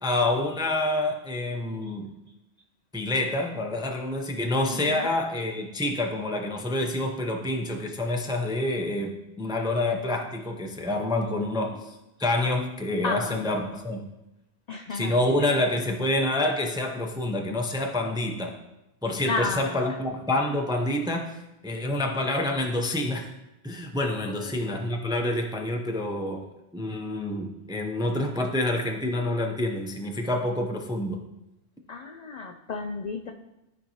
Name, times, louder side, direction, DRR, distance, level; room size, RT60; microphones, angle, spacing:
voice 1, 0.0-2.1 2.9-11.8 12.2-14.1 14.9-18.6 19.0-21.4 21.6-23.3 23.6-26.5 26.7-31.2, left 1 dB, 5° right, 2 dB, 0.4 m, -27 dB
voice 2, 4.7-5.2 13.0-13.4 14.7-15.4 19.2-20.0 24.3-24.6 31.9-33.3, left 4 dB, 60° left, 4 dB, 0.4 m, -33 dB
13.0 x 4.5 x 2.9 m, 0.91 s
omnidirectional pair, 1.2 m